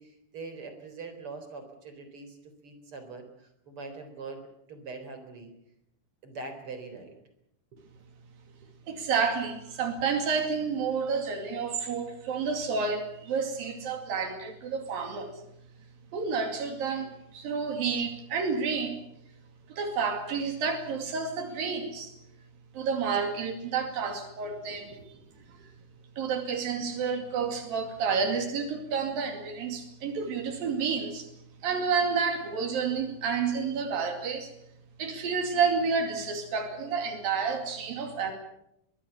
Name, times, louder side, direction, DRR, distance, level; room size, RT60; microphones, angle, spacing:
voice 1, 0.0-5.5 6.2-7.2 7.7-7.8 8.5-8.6 24.5-25.2 25.5-25.7, right 3 dB, 40° right, 7 dB, 4.5 m, -43 dB
voice 2, 8.9-15.3 16.1-19.0 19.7-22.1 22.7-24.9 26.2-31.3 31.6-34.5 35.0-38.3, right 5 dB, 80° right, 5 dB, 4.3 m, -30 dB
23.0 x 21.5 x 7.2 m, 0.79 s
omnidirectional pair, 4.0 m